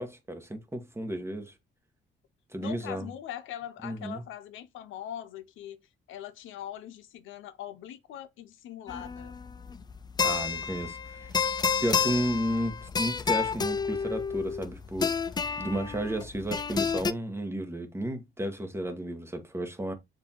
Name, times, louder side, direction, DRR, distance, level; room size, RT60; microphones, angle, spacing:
voice 1, 0.0-1.5 2.5-3.1 3.8-4.2 10.2-11.4 11.8-15.1 15.6-19.9, right 1 dB, 15° right, 1.2 m, -33 dB
voice 2, 2.6-5.8 6.1-9.4, left 11 dB, 80° left, 0.6 m, -41 dB
sound 1, 8.9-17.1, left 6 dB, 20° left, 0.3 m, -30 dB
6.7 x 2.7 x 2.8 m
cardioid pair, 90°, 20 cm